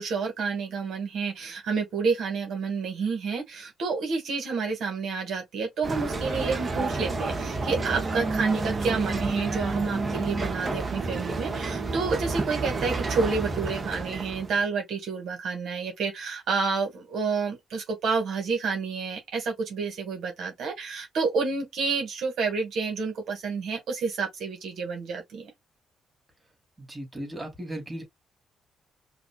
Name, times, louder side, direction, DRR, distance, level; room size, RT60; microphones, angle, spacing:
voice 1, 0.0-25.5, right 4 dB, 70° right, 1.8 m, -29 dB
sound 1, 5.8-14.6, right 3 dB, 35° right, 1.2 m, -30 dB
voice 2, 26.9-28.0, right 1 dB, 15° right, 2.6 m, -36 dB
5.1 x 2.8 x 2.2 m
cardioid pair, 90°, 0 cm